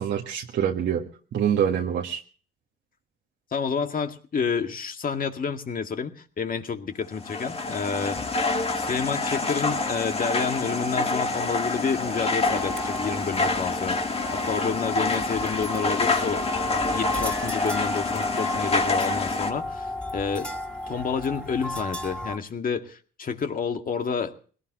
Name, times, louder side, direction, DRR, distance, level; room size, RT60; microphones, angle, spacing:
voice 1, 0.0-2.2, right 9 dB, 65° right, 1 dB, 1.6 m, -26 dB
voice 2, 3.5-8.2 8.8-14.0 14.5-16.5 16.9-20.6 20.9-24.3, left 6 dB, 45° left, 6 dB, 2.0 m, -29 dB
sound 1, 7.1-19.5, left 3 dB, 30° left, 1.8 m, -27 dB
sound 2, 12.4-22.4, left 1 dB, 5° left, 2.7 m, -34 dB
21.5 x 17.5 x 3.0 m, 0.42 s
cardioid pair, 90°, 20 cm